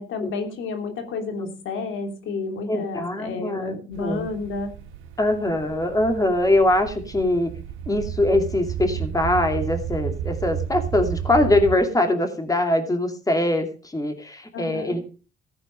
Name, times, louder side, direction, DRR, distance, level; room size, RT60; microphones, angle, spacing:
voice 1, 0.0-4.7 14.5-15.0, left 3 dB, 75° left, 5 dB, 3.1 m, -31 dB
voice 2, 2.7-4.3 5.2-7.5 7.9-15.0, left 1 dB, 15° left, 6 dB, 2.6 m, -22 dB
sound 1, 3.9-11.8, right 9 dB, 90° right, 2.0 m, -32 dB
14.5 x 9.0 x 5.2 m, 0.36 s
cardioid pair, 90°, 20 cm